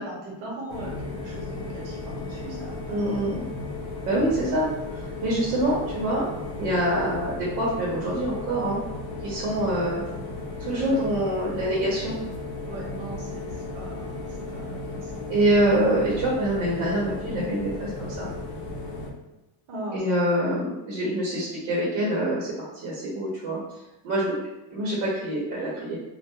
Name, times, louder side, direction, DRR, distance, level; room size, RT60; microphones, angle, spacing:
voice 1, 0.0-3.2 12.7-15.2 19.7-20.0, right 1 dB, 65° right, -3 dB, 1.0 m, -39 dB
sound 1, 0.7-19.1, left 2 dB, 55° left, 0.5 m, -35 dB
voice 2, 2.9-3.4 4.1-6.2 6.6-8.8 9.2-10.0 10.6-12.2 15.3-18.3 19.9-23.6 24.0-24.3 24.7-26.0, right 1 dB, 90° right, -5 dB, 0.8 m, -25 dB
2.2 x 2.1 x 2.8 m, 1.0 s
cardioid pair, 165°, 47 cm